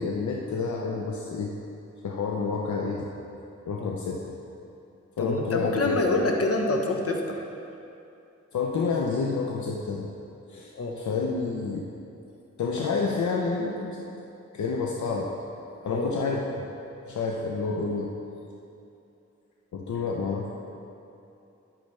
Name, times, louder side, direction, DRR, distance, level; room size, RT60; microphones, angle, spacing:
voice 1, 0.0-1.5 2.0-3.1 3.6-4.2 5.2-6.0 8.5-10.1 10.5-11.9 12.6-14.1 14.5-15.3 15.8-16.7 17.0-18.1 19.7-20.5, left 4 dB, 75° left, 0 dB, 0.7 m, -29 dB
voice 2, 5.2-7.4 10.7-11.0 15.9-16.1, left 2 dB, 55° left, 2 dB, 1.2 m, -26 dB
10.5 x 8.9 x 3.3 m, 2.7 s
cardioid pair, 60°, 29 cm